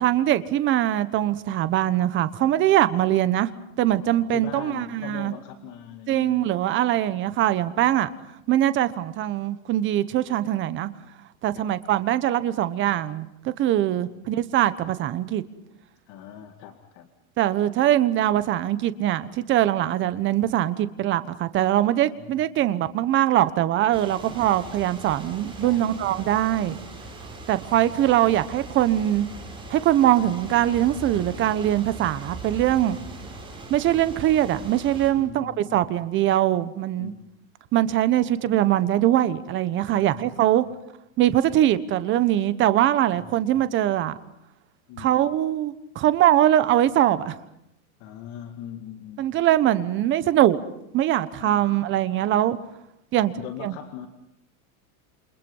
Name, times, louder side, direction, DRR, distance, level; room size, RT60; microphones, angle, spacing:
voice 1, 0.0-3.5 3.8-5.3 6.1-8.1 8.5-10.9 11.4-15.4 17.4-26.8 27.5-29.3 29.7-33.0 33.7-37.1 37.7-40.6 41.2-44.2 45.0-47.4 49.2-50.6 50.9-52.6 53.1-53.3 53.6-53.7, right 12 dB, 25° right, 14 dB, 1.2 m, -22 dB
voice 2, 3.9-6.4 11.5-11.6 16.1-17.1 22.2-22.3 25.6-26.0 28.1-28.2 35.1-36.1 37.0-37.3 39.8-40.6 43.2-43.3 44.9-45.2 48.0-49.2 51.4-51.7 53.3-54.1, left 9 dB, 45° left, 5 dB, 2.3 m, -41 dB
sound 1, 23.9-35.1, right 2 dB, 10° right, 6.0 m, -40 dB
29.0 x 27.0 x 5.6 m, 0.82 s
supercardioid pair, 155°, 43 cm